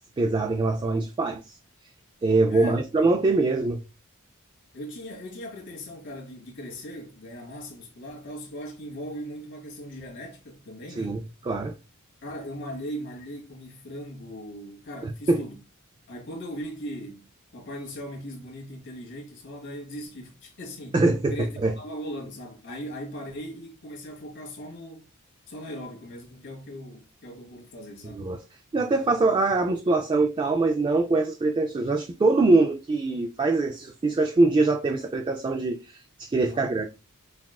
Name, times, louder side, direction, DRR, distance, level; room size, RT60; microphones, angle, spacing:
voice 1, 0.2-1.4 2.2-3.8 11.0-11.7 15.3-15.4 20.9-21.7 28.2-28.4 28.7-36.9, right 3 dB, 20° right, 0.3 m, -23 dB
voice 2, 2.5-2.8 4.7-11.2 12.2-15.6 16.1-21.0 21.3-21.5 21.8-25.1 25.5-28.3 36.4-36.7, equal, 55° left, 1.4 m, -39 dB
5.8 x 2.4 x 2.3 m
head